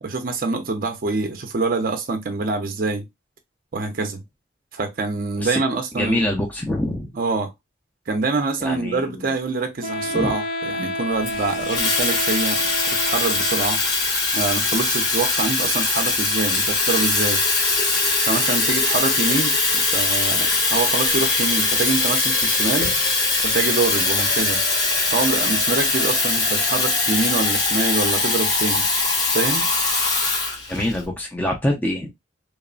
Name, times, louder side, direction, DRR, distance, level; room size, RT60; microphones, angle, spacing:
voice 1, 0.0-3.1 3.7-4.2 4.7-6.3 7.1-7.5 8.1-13.8 14.3-17.4 18.2-22.9 23.4-24.6 25.1-28.9 29.3-29.7, right 3 dB, 45° right, 0.5 m, -25 dB
voice 2, 6.0-7.1 8.6-9.3 10.1-10.4 30.7-32.1, left 1 dB, 10° left, 0.4 m, -25 dB
Wind instrument woodwind instrument, 9.8-13.9, left 1 dB, 85° left, 1.8 m, -29 dB
Water tap faucet / Fill (with liquid), 11.2-31.0, left 3 dB, 55° left, 0.9 m, -21 dB
2.9 x 2.1 x 2.4 m
head